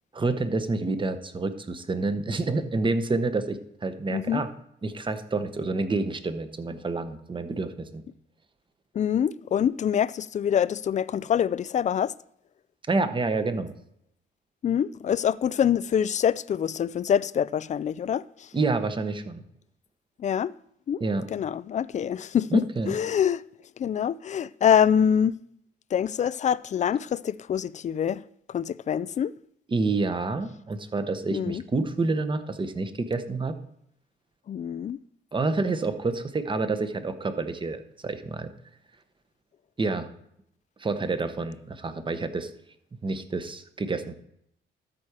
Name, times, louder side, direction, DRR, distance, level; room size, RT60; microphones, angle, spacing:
voice 1, 0.1-4.5 4.8-8.0 12.9-13.7 18.5-19.4 21.0-21.2 22.5-23.0 29.7-33.6 35.3-38.5 39.8-40.1 40.8-42.5 43.0-44.1, right 3 dB, 25° right, 1.0 m, -28 dB
voice 2, 4.1-4.4 8.9-12.1 14.6-18.5 20.2-20.5 20.9-21.0 21.3-23.4 23.8-25.3 25.9-29.3 31.3-31.6 34.5-35.0, left 8 dB, 35° left, 0.4 m, -25 dB
13.0 x 4.4 x 4.8 m
cardioid pair, 90°, 20 cm